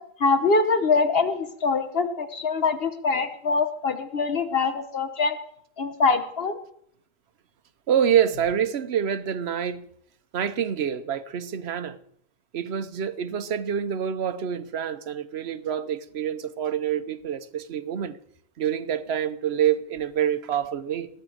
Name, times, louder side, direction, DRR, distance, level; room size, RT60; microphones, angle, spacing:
voice 1, 0.2-5.4 5.8-6.6, left 4 dB, 65° left, 1.2 m, -24 dB
voice 2, 7.9-9.9 10.3-12.0 12.5-18.2 18.6-21.1, right 9 dB, 80° right, 1.0 m, -26 dB
19.0 x 6.6 x 7.8 m
omnidirectional pair, 1.1 m